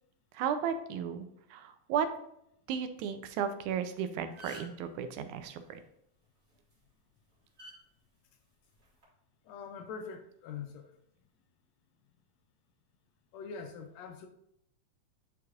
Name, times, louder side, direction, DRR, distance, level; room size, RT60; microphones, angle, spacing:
voice 1, 0.3-2.1 2.7-5.8, right 7 dB, 85° right, 9 dB, 2.1 m, -34 dB
sound 1, 3.8-3.9 4.2-4.9 6.5-6.7 7.6-7.8 8.8-9.0, equal, 25° right, 2.0 m, -48 dB
voice 2, 9.4-11.0 13.3-14.3, left 6 dB, 80° left, 6 dB, 1.6 m, -43 dB
9.2 x 4.7 x 2.5 m, 0.75 s
omnidirectional pair, 3.4 m